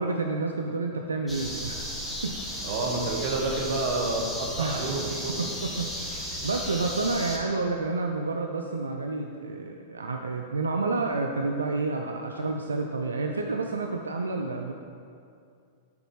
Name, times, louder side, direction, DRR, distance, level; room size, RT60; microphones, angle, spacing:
voice 1, 0.0-1.9 2.2-2.7 4.6-4.9 5.4-14.7, right 3 dB, 90° right, 3 dB, 0.3 m, -30 dB
sound 1, 1.3-7.4, equal, 5° left, 1.3 m, -35 dB
voice 2, 2.6-5.6, right 3 dB, 55° right, 0 dB, 1.2 m, -29 dB
7.0 x 4.0 x 4.7 m, 2.4 s
hypercardioid pair, 105°, 0 cm